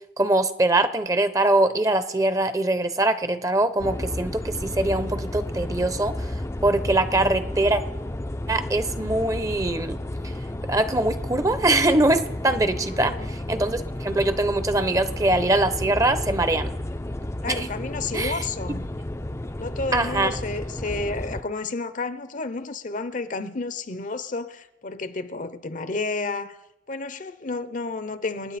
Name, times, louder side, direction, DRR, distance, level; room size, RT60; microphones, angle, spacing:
voice 1, 0.2-6.3 6.6-7.8 8.5-10.0 10.7-16.7 17.5-17.7 18.1-18.4 19.9-20.3, right 2 dB, 20° right, 0.7 m, -23 dB
sound 1, 3.8-21.4, left 1 dB, 15° left, 0.5 m, -32 dB
voice 2, 12.9-13.3 17.4-18.9 19.6-26.6 26.9-28.6, left 3 dB, 45° left, 0.8 m, -31 dB
28.0 x 9.5 x 4.2 m
head